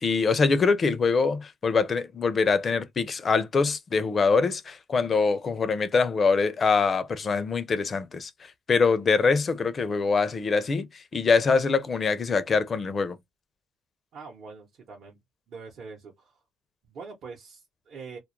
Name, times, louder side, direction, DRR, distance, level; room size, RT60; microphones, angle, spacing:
voice 1, 0.0-8.3 8.7-13.2, left 4 dB, 35° left, 0.4 m, -24 dB
voice 2, 14.1-15.2 15.5-16.4 16.9-18.2, right 4 dB, 55° right, 0.8 m, -43 dB
2.2 x 2.0 x 2.9 m
cardioid pair, 100°, 0 cm